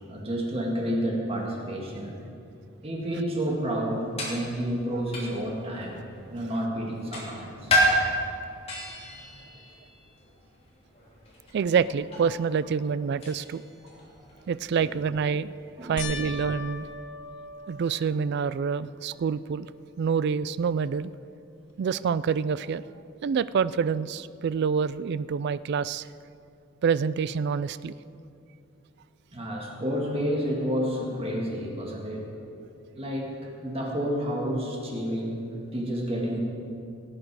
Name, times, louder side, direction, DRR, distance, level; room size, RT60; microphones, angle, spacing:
voice 1, 0.1-2.2 2.8-6.0 6.3-7.8 15.8-16.0 29.3-32.2 33.0-35.5 35.7-36.4, equal, 30° right, -1 dB, 1.8 m, -30 dB
sound 1, 3.7-16.9, equal, 30° left, 3.3 m, -33 dB
voice 2, 11.5-13.6 14.5-15.5 15.8-16.9 17.7-19.7 20.0-21.1 21.8-22.8 23.2-26.1 26.8-27.9, right 6 dB, 55° right, 17 dB, 0.3 m, -27 dB
sound 2, 16.0-18.6 19.2-19.7 20.1-20.2 23.4-23.5, left 4 dB, 70° left, 1.0 m, -39 dB
18.0 x 8.8 x 4.7 m, 2.6 s
head